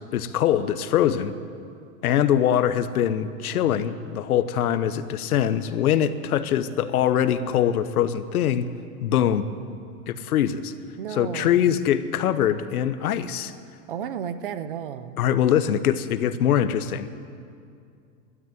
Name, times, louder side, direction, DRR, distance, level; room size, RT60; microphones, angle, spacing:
voice 1, 0.0-1.3 2.0-8.7 9.0-9.4 10.1-10.7 11.1-13.5 15.2-17.1, left 10 dB, 70° left, 12 dB, 1.0 m, -23 dB
voice 2, 11.0-11.8 13.9-15.2, right 8 dB, 35° right, 13 dB, 0.5 m, -33 dB
12.5 x 12.5 x 9.3 m, 2.4 s
supercardioid pair, 180°, 46 cm